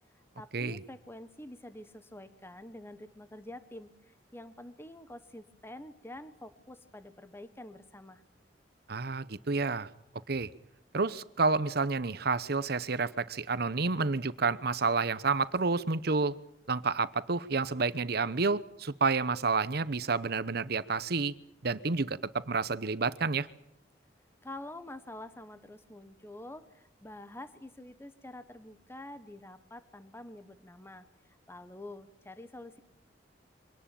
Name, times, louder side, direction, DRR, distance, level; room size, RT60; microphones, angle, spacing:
voice 1, 0.1-8.2 24.4-32.8, left 1 dB, 15° left, 12 dB, 1.2 m, -47 dB
voice 2, 8.9-9.9 10.3-10.5 10.9-16.4 16.7-21.3 21.6-23.5, right 4 dB, 60° right, 15 dB, 0.9 m, -29 dB
24.5 x 18.5 x 8.9 m, 0.74 s
head